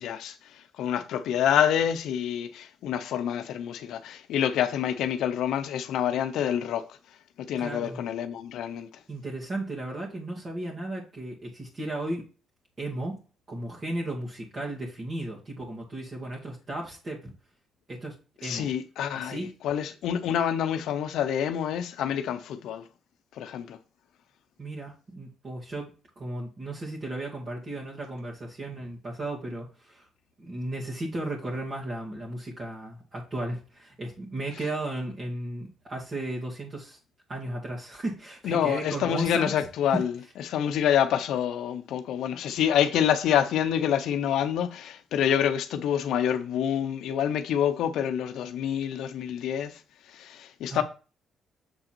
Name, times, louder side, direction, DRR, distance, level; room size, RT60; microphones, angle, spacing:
voice 1, 0.0-6.8 7.4-8.9 18.4-22.9 23.3-23.8 38.4-40.1 40.4-49.8 50.1-50.8, left 9 dB, 80° left, 0.6 m, -27 dB
voice 2, 7.6-8.0 9.1-12.2 12.8-13.2 13.5-17.3 17.9-18.2 18.4-18.7 19.1-19.5 24.6-25.9 26.2-30.1 30.4-37.0 37.3-39.5 39.9-40.0 50.7-50.8, right 1 dB, 40° right, 2.1 m, -35 dB
7.0 x 3.9 x 4.4 m
cardioid pair, 90°, 0 cm